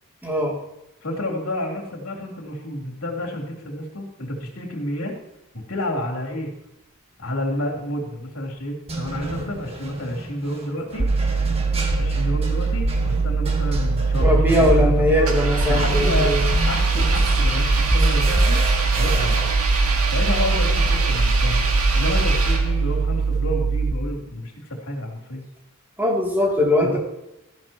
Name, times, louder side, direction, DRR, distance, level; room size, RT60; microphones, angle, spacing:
voice 1, 0.2-0.6 14.2-16.4 26.0-27.0, left 1 dB, 10° right, -2 dB, 2.9 m, -20 dB
voice 2, 1.0-5.1 5.5-6.5 7.2-11.1 12.0-15.3 15.7-18.6 19.0-19.5 20.1-21.6 21.9-25.5 26.8-27.0, left 1 dB, 70° left, 1 dB, 3.5 m, -30 dB
sound 1, 7.8-8.1 8.9-19.5, right 2 dB, 25° right, 1.9 m, -33 dB
sound 2, 11.0-23.9, right 4 dB, 45° right, 1.0 m, -22 dB
Engine, 15.2-23.0, right 2 dB, 75° right, 2.7 m, -23 dB
15.0 x 13.0 x 3.0 m, 0.91 s
head